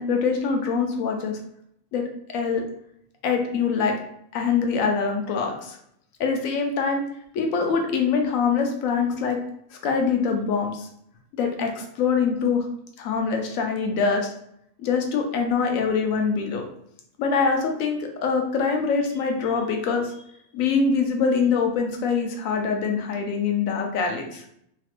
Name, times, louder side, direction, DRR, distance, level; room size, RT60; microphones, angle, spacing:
voice 1, 0.0-1.4 1.9-2.0 2.3-2.6 3.2-4.0 4.3-5.8 6.2-7.0 7.3-9.4 9.7-10.9 11.4-12.7 13.0-14.3 14.8-16.6 17.2-20.2 20.5-24.4, left 5 dB, 75° left, 3 dB, 1.0 m, -24 dB
3.0 x 2.9 x 2.4 m, 0.72 s
omnidirectional pair, 1.4 m